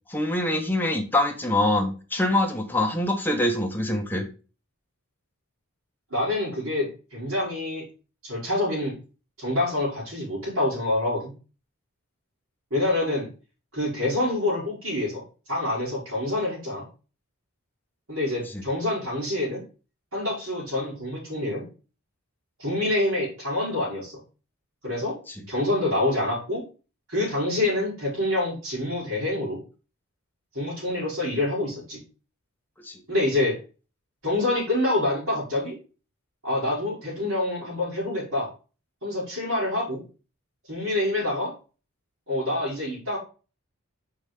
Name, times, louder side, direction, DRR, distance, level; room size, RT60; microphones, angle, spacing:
voice 1, 0.1-4.3 18.4-18.7 25.3-25.5 32.8-33.0, left 1 dB, 10° left, 3 dB, 1.1 m, -25 dB
voice 2, 6.1-7.8 8.2-8.9 9.4-11.3 12.7-13.3 13.7-15.2 15.5-16.8 18.1-19.6 20.1-21.6 22.6-24.2 24.8-25.2 25.5-26.6 27.1-29.6 30.5-32.0 33.1-33.6 34.2-35.8 36.4-38.5 39.0-40.0 40.7-41.5 42.3-43.2, left 1 dB, 65° right, -9 dB, 4.7 m, -26 dB
6.1 x 4.9 x 5.1 m, 0.34 s
head